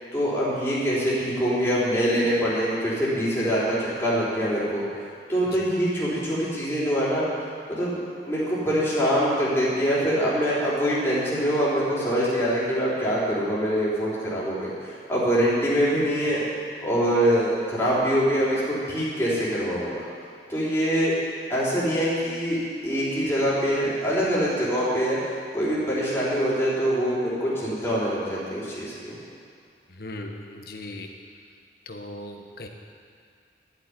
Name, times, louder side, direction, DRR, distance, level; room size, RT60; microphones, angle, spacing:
voice 1, 0.1-4.8 5.3-7.3 7.7-14.7 15.1-16.4 16.8-18.6 18.9-20.0 20.5-21.1 21.5-25.2 25.5-29.2, equal, 15° left, -9 dB, 4.2 m, -24 dB
voice 2, 29.9-31.1 31.8-32.7, left 1 dB, 55° left, 3 dB, 1.4 m, -38 dB
11.5 x 8.3 x 9.8 m, 2.4 s
head